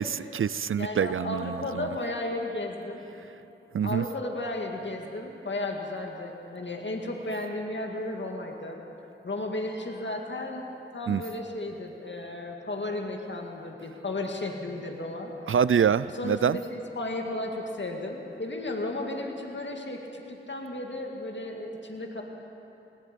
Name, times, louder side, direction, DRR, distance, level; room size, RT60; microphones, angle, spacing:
voice 1, 0.0-1.9 3.7-4.0 11.1-11.2 15.5-16.6, right 7 dB, 75° right, 17 dB, 0.4 m, -26 dB
voice 2, 0.8-3.0 3.8-8.8 9.2-15.3 16.1-22.2, left 2 dB, 60° left, 1 dB, 2.1 m, -34 dB
24.0 x 20.5 x 5.3 m, 2.9 s
wide cardioid pair, 55°, 21 cm